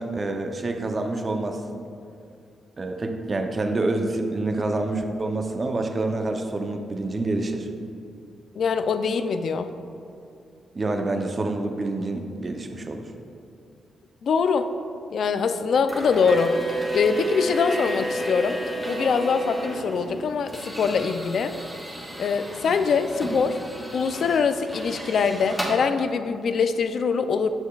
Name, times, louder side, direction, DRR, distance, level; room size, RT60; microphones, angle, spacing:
voice 1, 0.0-1.8 2.8-7.7 10.7-13.1, right 2 dB, 35° right, 4 dB, 0.6 m, -27 dB
voice 2, 8.6-9.7 14.2-14.7 15.1-18.6 18.9-21.5 22.2-23.6 23.9-27.5, left 5 dB, 65° left, 9 dB, 0.3 m, -23 dB
sound 1, 15.9-25.7, equal, ahead, 1.3 m, -32 dB
7.7 x 6.4 x 2.3 m, 2.4 s
cardioid pair, 85°, 0 cm